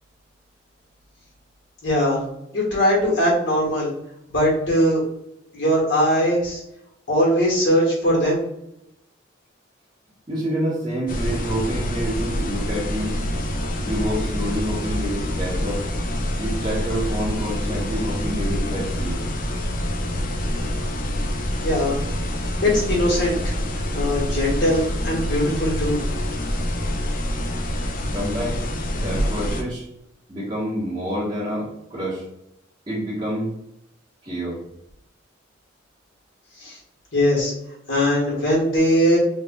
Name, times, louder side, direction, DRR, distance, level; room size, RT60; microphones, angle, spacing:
voice 1, 1.8-2.2 2.5-3.9 4.3-5.0 5.5-6.6 7.1-8.4 21.6-22.0 22.6-23.5 23.9-26.0 36.6-36.8 37.1-37.5 37.9-39.2, equal, 75° left, -4 dB, 1.4 m, -20 dB
voice 2, 10.3-13.1 13.8-15.8 16.4-19.2 28.0-29.9 30.3-32.2 32.9-33.6 34.2-34.6, equal, 25° right, -10 dB, 1.3 m, -28 dB
sound 1, 11.1-29.6, equal, 45° left, 0.5 m, -26 dB
3.2 x 2.5 x 3.6 m, 0.82 s
head